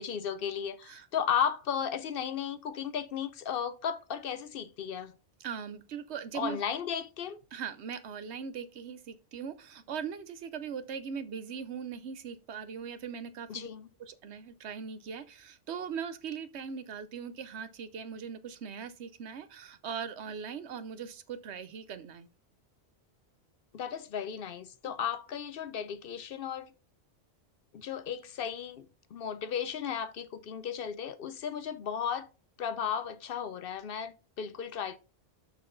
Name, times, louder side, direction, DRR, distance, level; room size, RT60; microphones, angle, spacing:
voice 1, 0.0-5.1 6.3-7.4 13.5-13.9 23.7-26.7 27.7-28.9 29.1-32.3 32.6-35.0, left 8 dB, 60° left, 0.7 m, -35 dB
voice 2, 5.4-6.6 7.5-13.7 14.0-22.3 24.8-24.9, right 7 dB, 80° right, 1.0 m, -40 dB
6.3 x 5.6 x 3.9 m
omnidirectional pair, 1.1 m